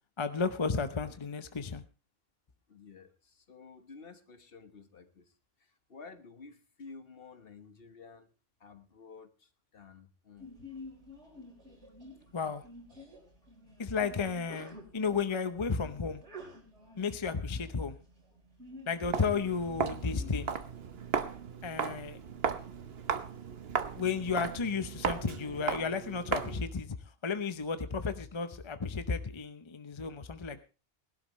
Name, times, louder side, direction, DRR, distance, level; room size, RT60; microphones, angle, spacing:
voice 1, 0.2-1.8 12.3-12.6 13.8-16.2 17.0-18.0 18.9-20.5 21.6-22.2 23.9-27.0 27.2-30.6, left 5 dB, 30° left, 10 dB, 0.8 m, -33 dB
voice 2, 2.7-8.3 8.6-10.5 12.3-12.4, left 4 dB, 55° left, 8 dB, 1.5 m, -52 dB
Sneeze, 10.4-20.4, left 1 dB, 85° right, 4.5 m, -51 dB
Walk footsteps, 19.1-26.7, right 6 dB, 60° right, 1.2 m, -36 dB
20.0 x 12.0 x 3.1 m, 0.32 s
omnidirectional pair, 1.2 m